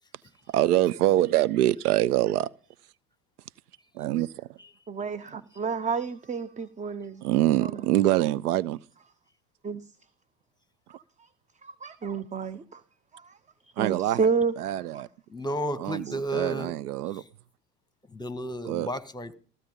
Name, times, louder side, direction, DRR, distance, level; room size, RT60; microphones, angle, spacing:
voice 1, 0.5-2.5 4.0-4.5 7.2-8.8 13.8-14.3 14.6-15.1 15.8-17.2 18.6-18.9, right 14 dB, 70° right, 0.7 m, -25 dB
voice 2, 4.9-7.8 9.6-9.8 10.9-11.0 11.6-12.8 13.1-13.3 13.8-14.5 14.9-15.0 16.1-16.2, right 5 dB, 15° right, 0.8 m, -30 dB
voice 3, 15.3-16.7 18.1-19.3, right 1 dB, 10° left, 1.7 m, -32 dB
15.5 x 15.0 x 5.4 m
figure-of-eight pair, 80°, 47 cm